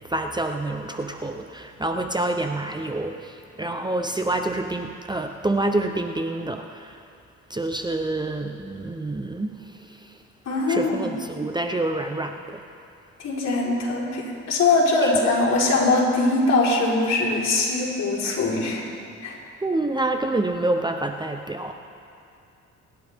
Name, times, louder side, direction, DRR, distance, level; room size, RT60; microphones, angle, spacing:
voice 1, 0.1-3.3 3.6-6.9 7.5-9.5 10.7-12.6 15.0-15.1 19.6-21.7, right 2 dB, 15° right, 5 dB, 0.8 m, -27 dB
voice 2, 10.5-11.1 13.2-18.8 19.2-19.4, left 3 dB, 60° left, -5 dB, 4.2 m, -22 dB
26.5 x 11.0 x 3.6 m, 2.5 s
cardioid pair, 90°, 30 cm